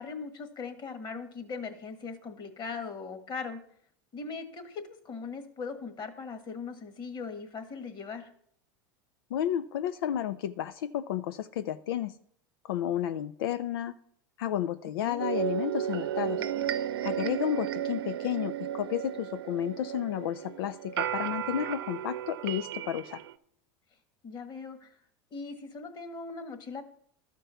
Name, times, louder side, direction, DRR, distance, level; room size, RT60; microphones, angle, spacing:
voice 1, 0.0-3.6 4.1-8.3 15.0-15.3 16.2-16.7 24.2-24.9 25.3-26.8, left 4 dB, 35° left, 8 dB, 1.6 m, -40 dB
voice 2, 9.3-12.1 12.6-13.9 14.4-16.5 17.0-23.2, left 10 dB, 80° left, 12 dB, 0.4 m, -32 dB
sound 1, 15.2-23.3, right 10 dB, 90° right, 0.7 m, -34 dB
12.5 x 4.5 x 6.9 m, 0.66 s
supercardioid pair, 105°, 12 cm